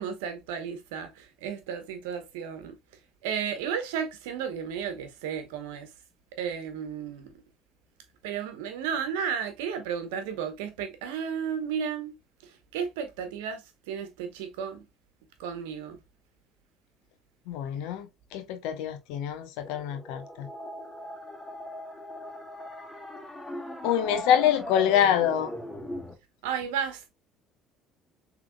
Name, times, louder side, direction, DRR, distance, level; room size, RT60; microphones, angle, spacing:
voice 1, 0.0-2.8 3.2-5.9 6.4-7.3 8.2-12.1 12.7-14.8 15.4-16.0 26.4-27.1, right 7 dB, 85° right, 1.0 m, -33 dB
voice 2, 17.5-18.1 18.3-20.5 23.8-25.5, left 10 dB, 75° left, 0.9 m, -25 dB
sound 1, 19.6-26.1, left 1 dB, 20° left, 2.3 m, -39 dB
6.2 x 3.4 x 2.2 m
supercardioid pair, 75°, 0 cm